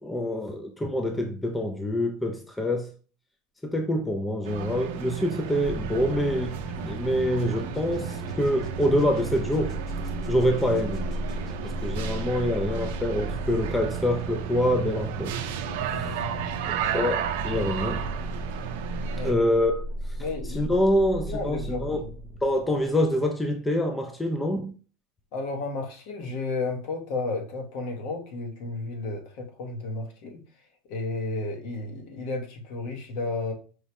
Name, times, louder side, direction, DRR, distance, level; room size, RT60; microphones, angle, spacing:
voice 1, 0.0-2.9 3.6-9.7 10.3-11.1 11.6-15.4 15.9-16.1 16.9-18.0 19.2-19.8 20.5-22.0 22.4-24.7, left 1 dB, 10° left, 0.4 m, -26 dB
sound 1, 4.4-19.3, right 9 dB, 75° right, 0.4 m, -34 dB
sound 2, 5.6-23.4, right 1 dB, 30° left, 0.7 m, -35 dB
voice 2, 15.9-16.5 19.1-19.4 20.2-20.7 21.2-22.1 25.3-30.4 30.9-33.5, left 3 dB, 60° left, 0.9 m, -33 dB
4.6 x 2.1 x 2.8 m
supercardioid pair, 150°, 0 cm